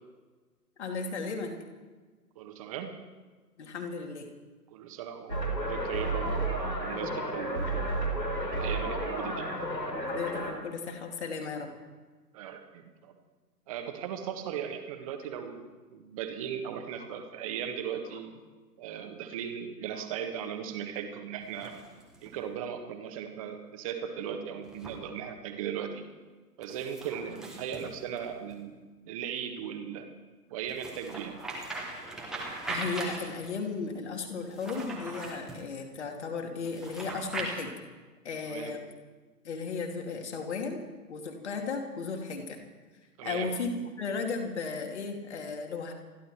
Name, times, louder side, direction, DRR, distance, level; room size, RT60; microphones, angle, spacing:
voice 1, 0.8-1.5 3.6-4.3 9.9-11.7 18.1-18.2 19.9-20.1 32.7-37.7 38.2-38.8 39.4-40.8 41.1-42.6 43.2-45.9, left 4 dB, 45° left, 3 dB, 2.8 m, -35 dB
voice 2, 2.3-2.9 4.7-7.7 8.5-9.5 12.3-13.1 13.7-18.3 18.8-21.7 22.2-26.0 26.6-30.1 30.5-31.4 38.5-38.8 43.2-43.5, right 8 dB, 20° right, 6 dB, 1.5 m, -38 dB
sound 1, 5.3-10.5, right 1 dB, 85° left, 3.7 m, -32 dB
sound 2, 21.4-22.4 24.6-25.0 26.6-28.6 30.7-33.6 34.4-35.6 36.6-37.5, right 2 dB, ahead, 1.2 m, -40 dB
28.5 x 11.5 x 4.4 m, 1.4 s
figure-of-eight pair, 135°, 49 cm